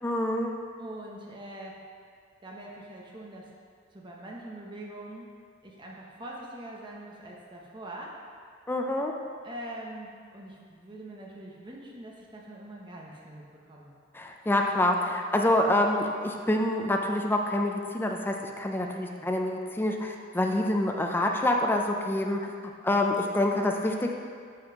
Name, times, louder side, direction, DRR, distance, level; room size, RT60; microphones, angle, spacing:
voice 1, 0.0-0.6 8.7-9.1 14.1-24.1, left 1 dB, 10° left, 2 dB, 0.4 m, -27 dB
voice 2, 0.8-1.8 2.4-3.5 3.9-5.3 5.6-8.2 9.4-14.0 18.9-19.2, right 1 dB, 25° right, -2 dB, 0.9 m, -43 dB
5.7 x 5.4 x 5.2 m, 2.1 s
head